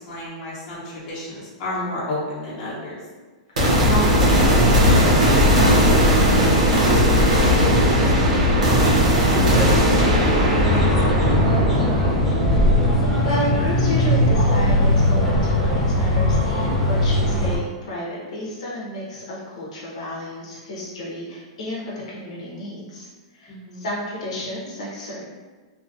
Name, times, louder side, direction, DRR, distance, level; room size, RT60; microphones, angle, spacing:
voice 1, 0.0-3.0 3.8-7.4 7.7-8.9 9.3-12.4 23.5-23.9, equal, 30° left, -8 dB, 0.9 m, -31 dB
voice 2, 3.5-3.9 13.2-23.1 23.3-25.2, left 1 dB, 70° left, -5 dB, 0.7 m, -31 dB
sound 1, 3.6-14.9, equal, 85° right, 0.8 m, -18 dB
sound 2, 10.6-17.6, left 1 dB, ahead, 0.6 m, -20 dB
2.6 x 2.3 x 2.6 m, 1.4 s
supercardioid pair, 165°, 4 cm